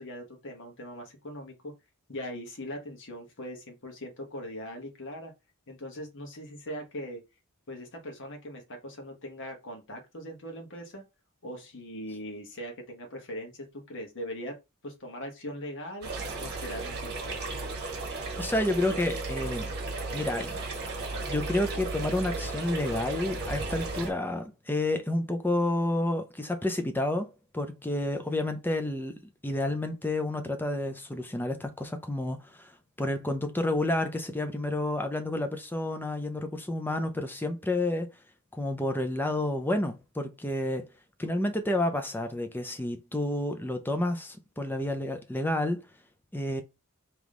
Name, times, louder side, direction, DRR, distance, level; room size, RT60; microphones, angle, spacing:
voice 1, 0.0-1.7 2.1-5.3 5.7-7.2 7.7-11.0 11.4-14.6 14.8-16.1 16.4-17.2, equal, 55° left, 1.2 m, -40 dB
sound 1, 16.0-24.1, right 3 dB, 45° right, 1.1 m, -35 dB
voice 2, 18.4-19.7 20.1-20.6 21.3-32.7 33.0-38.1 38.5-40.9 41.2-45.8 46.3-46.6, left 1 dB, 10° left, 0.5 m, -30 dB
3.5 x 3.0 x 3.7 m
head